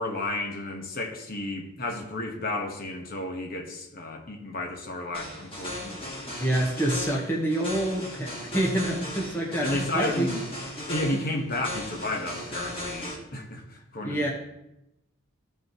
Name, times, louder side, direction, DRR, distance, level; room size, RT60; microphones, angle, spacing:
voice 1, 0.0-6.4 9.6-10.5 10.8-14.3, left 1 dB, 45° left, 1 dB, 1.3 m, -32 dB
sound 1, 5.1-13.2, left 1 dB, 25° left, 2.0 m, -37 dB
voice 2, 6.4-10.3 14.0-14.3, right 1 dB, 10° left, -3 dB, 1.2 m, -27 dB
14.5 x 5.6 x 3.1 m, 0.86 s
head